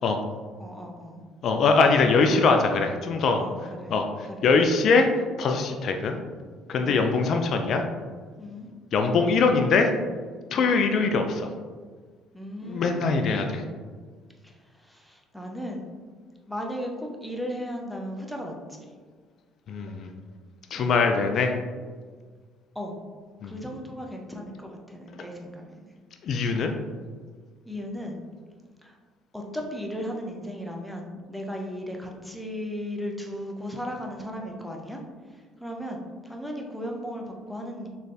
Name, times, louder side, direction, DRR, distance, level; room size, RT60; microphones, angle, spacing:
voice 1, 0.6-1.2 3.3-3.9 4.4-4.5 6.8-7.1 8.4-8.7 10.5-10.7 12.3-13.6 14.4-15.9 16.5-18.9 20.8-20.9 22.7-23.0 23.4-25.7 27.7-28.2 28.8-28.9 29.3-35.0 35.6-37.9, equal, ahead, 1 dB, 0.8 m, -36 dB
voice 2, 1.4-3.4 3.9-5.1 5.4-6.2 6.7-7.8 8.9-9.9 10.5-11.5 12.7-13.6 19.7-20.1 20.7-21.6 23.4-23.5 26.2-26.7, left 4 dB, 60° left, 5 dB, 0.3 m, -22 dB
4.1 x 3.2 x 2.7 m, 1.5 s
hypercardioid pair, 60°, 0 cm